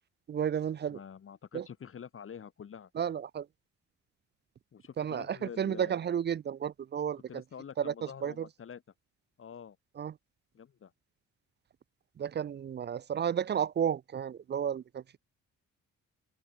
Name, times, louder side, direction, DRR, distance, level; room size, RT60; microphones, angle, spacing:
voice 1, 0.3-1.0 1.5-1.7 2.9-3.5 5.0-7.4 7.8-7.9 8.2-8.5 10.0-10.1 12.2-15.0, right 8 dB, 35° right, 0.5 m, -32 dB
voice 2, 0.9-2.9 4.7-6.0 7.3-8.8 9.4-9.8 10.5-10.9, left 7 dB, 45° left, 1.7 m, -47 dB
open air
cardioid pair, 90°, 30 cm